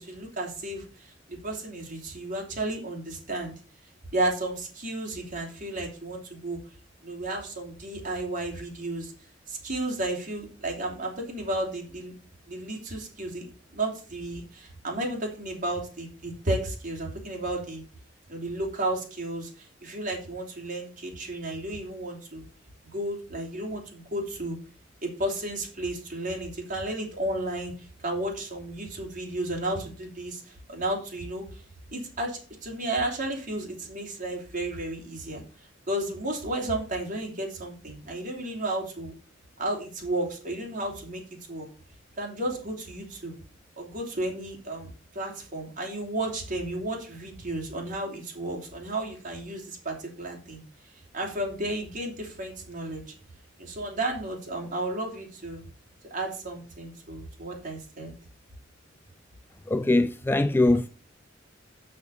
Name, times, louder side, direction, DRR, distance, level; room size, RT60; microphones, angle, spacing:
voice 1, 0.0-3.5 4.1-6.6 7.0-9.1 9.5-12.1 12.5-13.4 13.7-17.8 18.3-22.4 22.9-24.6 25.0-31.6 31.9-35.4 35.9-39.1 39.6-41.2 41.5-41.7 42.2-43.3 43.8-50.6 51.1-53.0 53.6-55.6 56.1-58.1, right 1 dB, 45° right, 3.2 m, -33 dB
voice 2, 59.7-60.9, left 2 dB, 10° left, 0.3 m, -22 dB
6.5 x 6.0 x 7.0 m
head